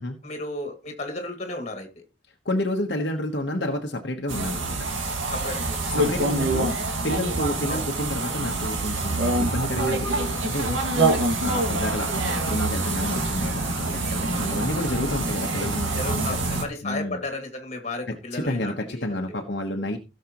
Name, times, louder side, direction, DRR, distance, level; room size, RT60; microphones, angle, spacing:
voice 1, 0.2-2.0 5.3-5.9 7.7-7.8 11.5-11.8 16.0-19.4, left 2 dB, 35° left, 2.2 m, -34 dB
voice 2, 2.4-4.9 6.0-6.8 7.0-10.8 11.1-17.2 18.1-20.0, left 1 dB, 60° left, 1.2 m, -30 dB
sound 1, 4.3-16.6, right 2 dB, 80° right, 2.2 m, -26 dB
17.0 x 6.5 x 3.0 m
head